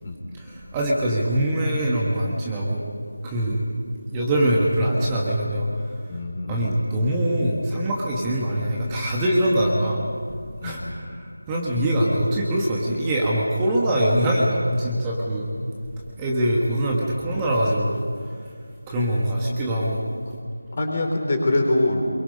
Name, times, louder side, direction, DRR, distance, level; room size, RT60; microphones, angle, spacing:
voice 1, 0.3-2.8 3.2-3.6 4.1-5.9 6.5-10.1 10.6-15.5 16.2-18.0 18.2-18.3 18.9-20.0, right 1 dB, 10° right, -4 dB, 1.7 m, -23 dB
voice 2, 6.1-6.6 10.6-10.8 20.7-22.0, left 2 dB, 35° left, 2 dB, 3.6 m, -24 dB
27.5 x 23.0 x 5.4 m, 2.2 s
figure-of-eight pair, 170°, 0 cm